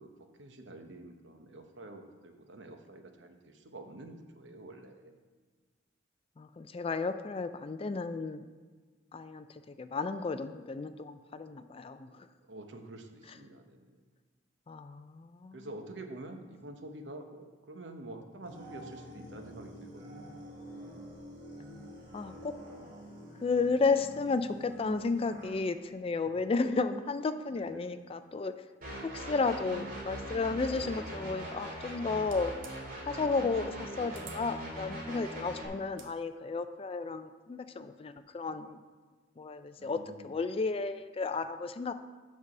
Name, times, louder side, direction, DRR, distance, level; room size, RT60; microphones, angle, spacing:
voice 1, 0.0-5.1 12.4-14.0 15.5-20.5 27.5-28.0 39.8-40.3, right 1 dB, 70° right, 5 dB, 0.9 m, -48 dB
voice 2, 6.4-8.5 9.1-12.3 14.7-15.7 22.1-22.5 23.4-28.5 29.0-32.5 33.0-38.8 39.4-41.9, left 4 dB, 30° left, 10 dB, 0.3 m, -33 dB
sound 1, 18.4-25.5, equal, 25° right, 2.8 m, -47 dB
sound 2, 28.8-35.7, right 1 dB, 50° right, 2.5 m, -41 dB
sound 3, 32.2-32.8 34.1-34.4 35.8-36.1, right 7 dB, 85° right, 1.2 m, -50 dB
8.3 x 4.7 x 6.0 m, 1.4 s
head